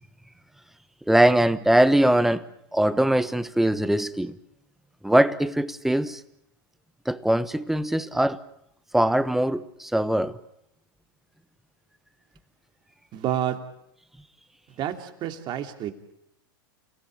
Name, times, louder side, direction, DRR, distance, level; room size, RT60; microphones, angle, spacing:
voice 1, 1.1-2.5 2.7-4.4 5.0-6.2 7.1-8.4 8.9-10.4, right 1 dB, ahead, 1.1 m, -21 dB
voice 2, 13.1-13.6 14.8-15.9, right 11 dB, 40° right, 3.0 m, -29 dB
29.0 x 17.5 x 8.7 m
hypercardioid pair, 110°, 12 cm